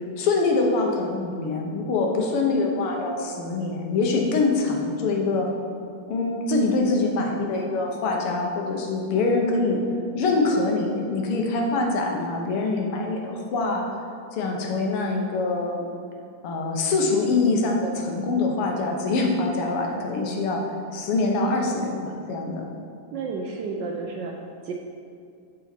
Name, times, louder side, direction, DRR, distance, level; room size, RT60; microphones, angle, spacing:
voice 1, 0.2-5.5 6.1-9.8 10.1-13.9 14.3-15.8 16.4-22.7, left 3 dB, 80° left, 1 dB, 1.9 m, -24 dB
voice 2, 23.1-24.7, right 4 dB, 75° right, 1 dB, 1.1 m, -32 dB
11.0 x 3.9 x 4.4 m, 2.4 s
omnidirectional pair, 2.4 m